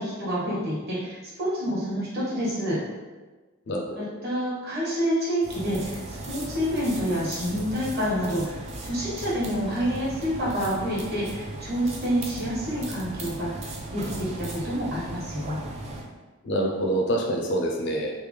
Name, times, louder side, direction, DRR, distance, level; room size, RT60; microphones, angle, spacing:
voice 1, 0.0-2.8 3.9-13.5 13.9-15.6, equal, 45° right, -7 dB, 1.2 m, -28 dB
voice 2, 3.7-4.1 16.4-18.1, right 1 dB, 55° left, 0 dB, 0.4 m, -26 dB
sound 1, 5.4-16.0, right 2 dB, 30° right, 0.4 m, -37 dB
3.3 x 2.1 x 3.2 m, 1.3 s
head